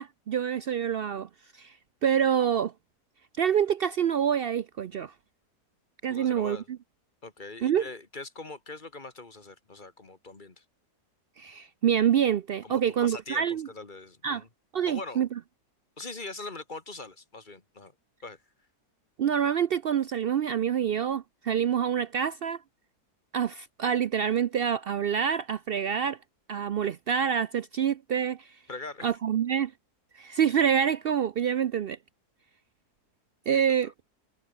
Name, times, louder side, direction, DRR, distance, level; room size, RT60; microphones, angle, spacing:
voice 1, 0.0-1.7 2.0-2.7 3.4-5.1 6.0-6.6 7.6-7.9 11.4-13.7 14.2-14.4 14.7-15.3 19.2-22.6 23.3-26.2 26.5-28.5 29.0-29.7 30.1-32.0 33.5-33.9, right 8 dB, 90° right, 0.5 m, -26 dB
voice 2, 6.1-6.7 7.2-10.6 12.6-14.5 14.9-15.2 16.0-17.9 18.2-18.4 28.7-29.1 33.5-33.9, left 3 dB, 30° left, 2.1 m, -42 dB
omnidirectional pair, 1.7 m